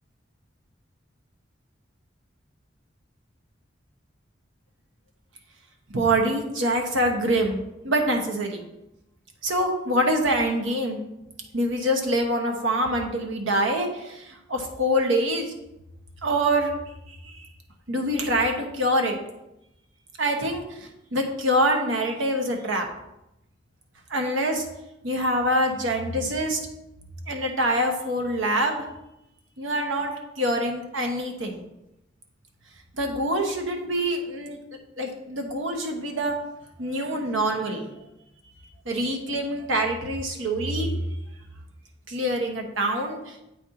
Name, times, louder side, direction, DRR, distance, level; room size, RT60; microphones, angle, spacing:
voice 1, 5.9-8.6 9.4-11.0 11.5-15.5 16.2-16.7 17.2-17.4 17.9-19.2 20.2-20.6 21.1-22.8 24.1-24.6 25.0-26.6 27.3-28.8 29.6-30.1 30.4-31.6 33.0-34.6 35.0-36.3 36.8-37.9 38.9-40.9 42.1-43.2, right 1 dB, 90° right, 3 dB, 1.1 m, -25 dB
8.1 x 4.4 x 3.8 m, 0.90 s
head